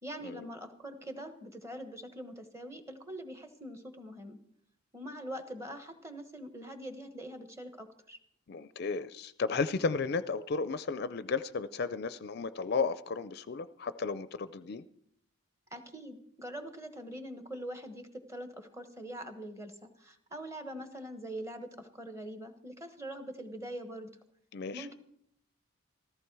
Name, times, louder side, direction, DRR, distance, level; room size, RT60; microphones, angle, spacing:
voice 1, 0.0-4.4 4.9-8.2 15.7-24.1 24.7-24.9, right 1 dB, 15° right, 7 dB, 1.2 m, -43 dB
voice 2, 8.5-14.8 24.5-24.9, left 4 dB, 50° left, 13 dB, 0.4 m, -34 dB
14.5 x 14.0 x 4.7 m, 0.71 s
head